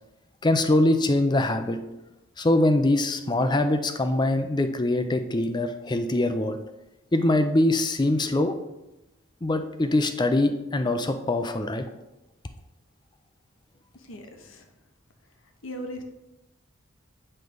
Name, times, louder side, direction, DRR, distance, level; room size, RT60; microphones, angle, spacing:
voice 1, 0.4-1.8 2.4-6.6 7.1-8.5 9.4-11.8, left 1 dB, 20° left, 8 dB, 0.5 m, -23 dB
voice 2, 13.9-14.7 15.4-16.0, equal, 75° left, 5 dB, 1.0 m, -39 dB
7.9 x 3.3 x 5.2 m, 0.95 s
head